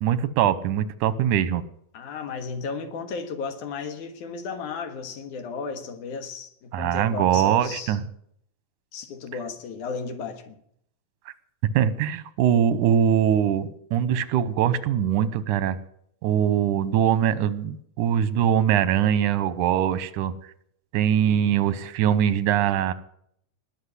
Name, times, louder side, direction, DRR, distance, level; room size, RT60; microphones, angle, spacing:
voice 1, 0.0-1.6 6.7-8.0 11.7-15.8 16.2-20.3 20.9-22.9, right 9 dB, 85° right, 2.4 m, -22 dB
voice 2, 1.9-8.0 8.9-10.6 21.3-21.7, left 5 dB, 75° left, 3.0 m, -34 dB
20.0 x 6.9 x 9.7 m
omnidirectional pair, 3.5 m